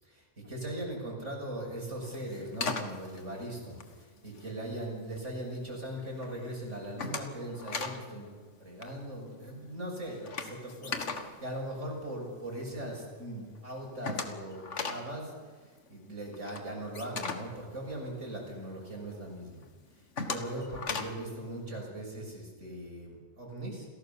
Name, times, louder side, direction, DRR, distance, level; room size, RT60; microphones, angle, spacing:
voice 1, 0.0-8.3 8.6-15.3 15.6-19.6 20.2-23.9, right 1 dB, 85° right, -1 dB, 7.0 m, -40 dB
sound 1, 2.0-4.6 5.0-5.6 5.9-6.3 6.6-8.1 8.3-8.5 8.7-12.5 12.9-13.0 13.3-13.4 13.5-18.6 19.0-19.1 19.6-21.3, left 4 dB, 80° left, 2.0 m, -38 dB
28.5 x 17.5 x 7.0 m, 1.5 s
omnidirectional pair, 1.2 m